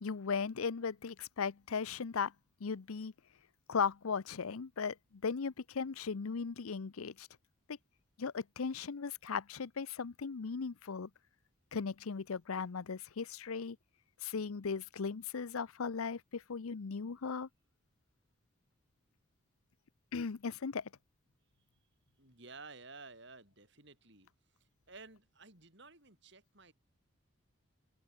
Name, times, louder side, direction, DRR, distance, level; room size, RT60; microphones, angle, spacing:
voice 1, 0.0-2.3 2.6-3.1 3.7-7.3 7.7-7.8 8.2-11.1 11.7-13.8 14.2-17.5 20.1-20.9, left 5 dB, 80° left, 0.6 m, -37 dB
voice 2, 22.2-24.3 24.9-26.7, right 3 dB, 55° right, 7.0 m, -53 dB
open air
head